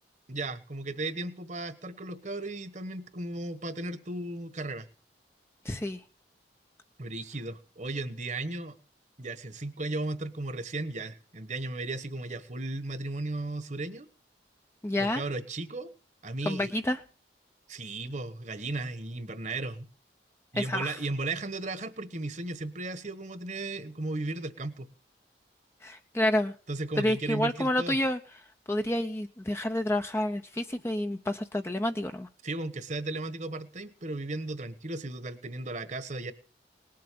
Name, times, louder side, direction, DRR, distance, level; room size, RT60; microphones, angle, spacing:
voice 1, 0.3-4.9 7.0-8.8 9.2-14.1 15.0-15.9 16.2-16.7 17.7-19.9 20.5-24.9 26.7-28.0 32.4-36.3, right 2 dB, 45° right, 12 dB, 1.3 m, -35 dB
voice 2, 5.6-6.0 14.8-15.2 16.5-17.0 20.5-21.0 25.8-26.5 27.0-28.2 28.7-32.3, left 1 dB, 15° left, 6 dB, 0.7 m, -29 dB
19.5 x 7.8 x 6.8 m, 0.38 s
head